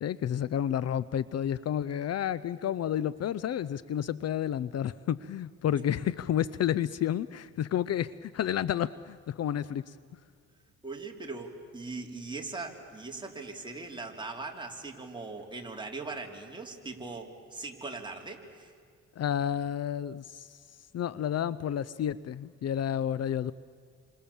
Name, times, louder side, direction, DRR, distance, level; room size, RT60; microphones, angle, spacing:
voice 1, 0.0-10.0 19.2-20.6 20.9-23.5, left 10 dB, 55° left, 17 dB, 0.6 m, -30 dB
voice 2, 10.8-18.7, right 3 dB, 15° right, 1 dB, 3.6 m, -40 dB
29.0 x 26.0 x 7.2 m, 2.1 s
cardioid pair, 90°, 30 cm